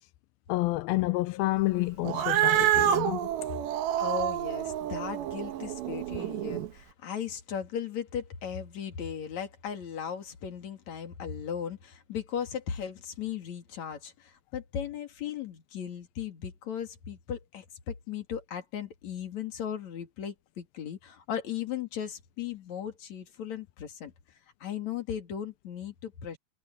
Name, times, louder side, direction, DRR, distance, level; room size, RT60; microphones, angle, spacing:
voice 1, 0.5-3.3, left 19 dB, 85° left, 2.1 m, -29 dB
Cat, 2.0-6.7, right 12 dB, 80° right, 3.8 m, -28 dB
voice 2, 4.0-24.1 24.6-26.4, left 8 dB, 45° left, 3.4 m, -37 dB
omnidirectional pair, 4.9 m